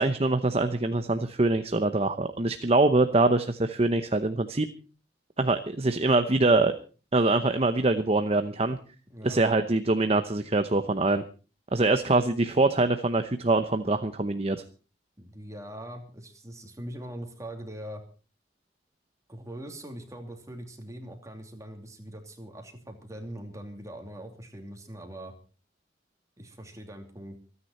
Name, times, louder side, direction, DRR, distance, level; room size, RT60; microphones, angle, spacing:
voice 1, 0.0-4.7 5.4-6.7 7.1-8.8 9.2-11.2 11.7-14.6, right 2 dB, 35° right, 9 dB, 0.8 m, -24 dB
voice 2, 9.1-9.4 15.2-18.0 19.3-25.3 26.4-27.4, right 1 dB, 15° right, 4 dB, 2.8 m, -42 dB
27.0 x 9.8 x 4.3 m, 0.36 s
head